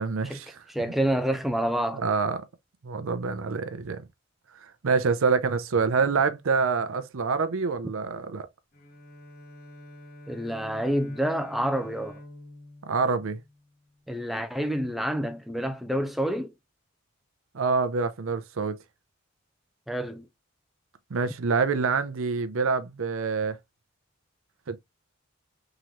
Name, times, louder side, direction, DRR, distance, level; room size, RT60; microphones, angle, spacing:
voice 1, 0.0-0.6 1.9-2.4 2.8-4.0 4.6-8.5 12.9-13.4 17.5-18.8 21.1-23.6 24.7-24.8, right 5 dB, 70° right, 0.5 m, -26 dB
voice 2, 0.7-2.1 10.3-12.1 14.1-16.5 19.9-20.3, right 1 dB, ahead, 0.4 m, -28 dB
Bowed string instrument, 8.7-14.0, left 1 dB, 45° left, 0.9 m, -47 dB
3.7 x 2.9 x 3.0 m
head